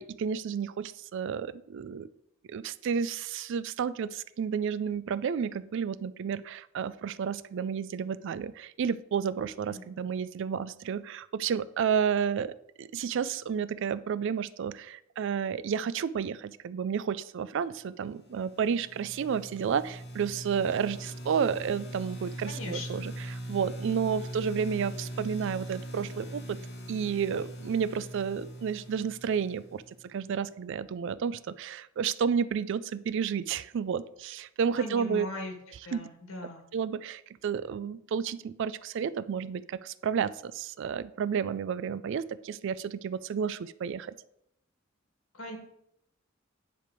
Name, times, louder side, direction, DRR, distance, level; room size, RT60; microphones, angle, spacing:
voice 1, 0.0-2.1 2.5-26.6 26.9-35.3 35.9-36.1 36.7-44.1, right 7 dB, 65° right, 16 dB, 0.3 m, -31 dB
sound 1, 18.3-30.1, right 1 dB, 55° left, 1.2 m, -41 dB
voice 2, 22.4-23.1 34.7-35.5 35.9-36.7 45.3-45.6, left 1 dB, 80° left, 1 dB, 1.9 m, -39 dB
10.0 x 3.4 x 4.8 m, 0.77 s
head